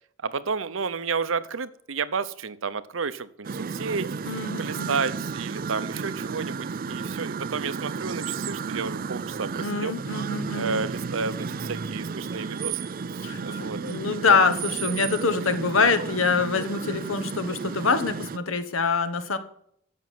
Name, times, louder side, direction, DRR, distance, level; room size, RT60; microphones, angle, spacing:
voice 1, 0.2-4.1 4.6-9.9 10.5-12.8 13.4-14.2, right 5 dB, 70° right, 14 dB, 0.8 m, -31 dB
sound 1, 3.4-18.4, right 5 dB, 45° right, 0.4 m, -33 dB
voice 2, 4.2-5.0 9.6-10.9 13.2-19.4, left 4 dB, 80° left, 10 dB, 1.3 m, -25 dB
11.0 x 7.4 x 7.7 m, 0.68 s
head